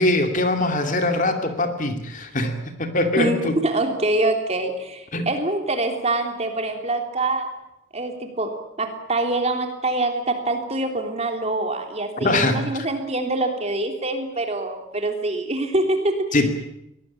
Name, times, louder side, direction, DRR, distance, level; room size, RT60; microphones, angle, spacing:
voice 1, 0.0-3.5 5.1-5.3 12.2-12.9 16.3-16.5, left 2 dB, 40° left, 6 dB, 2.6 m, -22 dB
voice 2, 3.2-7.5 7.9-16.4, right 2 dB, 30° right, 5 dB, 3.4 m, -25 dB
23.0 x 19.0 x 8.7 m, 0.82 s
head